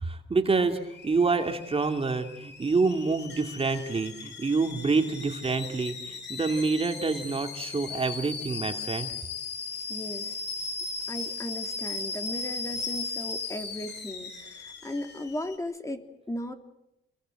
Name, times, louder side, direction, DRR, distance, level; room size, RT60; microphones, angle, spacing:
voice 1, 0.0-9.1, right 4 dB, 30° right, 5 dB, 2.6 m, -27 dB
Alarm / Boiling, 0.7-15.5, left 4 dB, 60° left, 6.5 m, -37 dB
voice 2, 9.9-10.4 11.1-16.5, left 1 dB, 15° left, 5 dB, 3.1 m, -36 dB
29.0 x 22.5 x 7.8 m, 0.86 s
cardioid pair, 90°, 20 cm